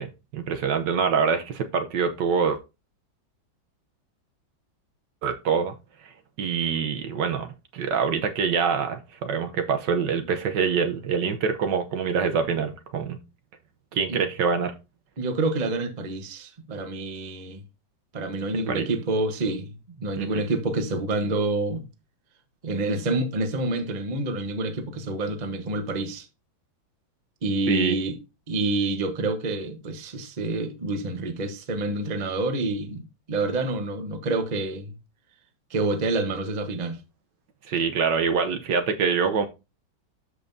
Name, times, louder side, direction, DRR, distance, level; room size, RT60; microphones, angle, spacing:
voice 1, 0.0-2.6 5.2-5.7 6.4-13.2 13.9-14.7 18.5-18.9 20.2-20.4 27.7-28.0 37.7-39.5, right 6 dB, 65° right, 1.5 m, -25 dB
voice 2, 15.2-17.6 18.1-21.8 22.6-26.3 27.4-28.2 28.5-34.9 35.7-37.0, right 2 dB, 30° right, 1.0 m, -28 dB
13.0 x 5.3 x 2.7 m
omnidirectional pair, 2.1 m